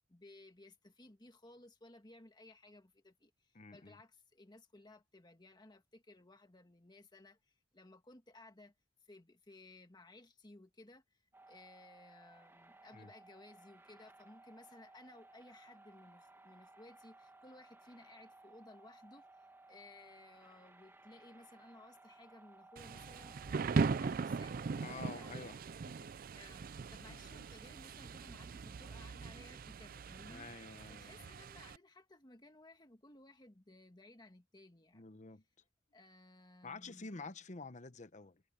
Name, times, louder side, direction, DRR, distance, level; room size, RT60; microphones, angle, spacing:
voice 1, 0.1-8.7 9.0-11.2 11.5-19.2 19.7-23.4 23.7-24.6 24.9-25.6 26.3-30.5 30.9-35.2 35.9-37.1, left 2 dB, 25° left, 1.6 m, -59 dB
voice 2, 3.5-4.0 12.9-13.1 24.8-25.6 27.1-27.2 30.2-31.2 34.9-35.4 36.6-38.4, left 3 dB, 40° left, 1.0 m, -49 dB
sound 1, 11.3-25.4, right 2 dB, 15° right, 1.4 m, -60 dB
Thunder / Rain, 22.8-31.8, right 4 dB, 50° right, 0.4 m, -40 dB
head